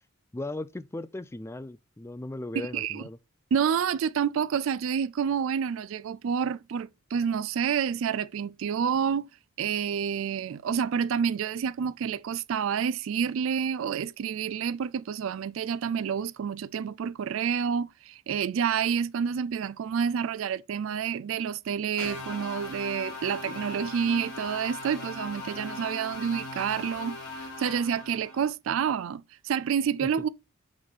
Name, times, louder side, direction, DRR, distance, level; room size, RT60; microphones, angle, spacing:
voice 1, 0.3-3.2, left 2 dB, 10° left, 0.3 m, -37 dB
voice 2, 2.6-3.1 3.5-9.3 9.6-30.3, right 7 dB, 65° right, 0.3 m, -29 dB
sound 1, 22.0-28.5, left 2 dB, 75° left, 3.0 m, -39 dB
7.9 x 4.1 x 3.5 m
head